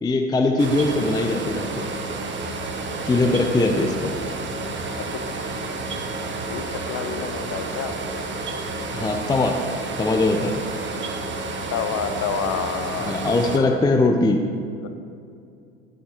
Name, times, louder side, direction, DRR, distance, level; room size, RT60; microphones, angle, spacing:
voice 1, 0.0-1.9 3.1-4.2 8.9-9.7 10.0-10.6 13.0-14.5, left 2 dB, 10° left, 4 dB, 0.6 m, -21 dB
sound 1, 0.6-13.6, right 3 dB, 25° right, 1.2 m, -30 dB
voice 2, 6.5-8.0 11.7-13.8, left 7 dB, 40° left, 9 dB, 0.9 m, -29 dB
19.0 x 7.6 x 3.1 m, 2.5 s
hypercardioid pair, 85°, 41 cm